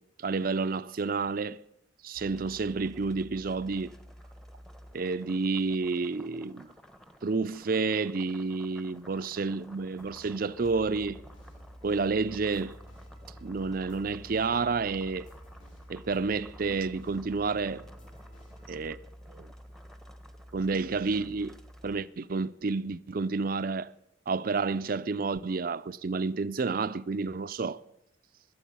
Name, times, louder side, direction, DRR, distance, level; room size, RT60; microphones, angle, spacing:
voice 1, 0.2-1.6 2.0-3.9 4.9-6.7 7.2-11.2 11.8-12.8 13.4-15.3 15.9-17.8 18.7-19.0 19.3-19.5 20.5-21.5 21.8-23.9 24.3-27.8, right 4 dB, 45° right, 0.4 m, -30 dB
sound 1, 2.1-22.0, equal, ahead, 0.8 m, -50 dB
sound 2, 9.9-19.0, right 1 dB, 75° left, 3.9 m, -57 dB
17.5 x 12.0 x 5.4 m
head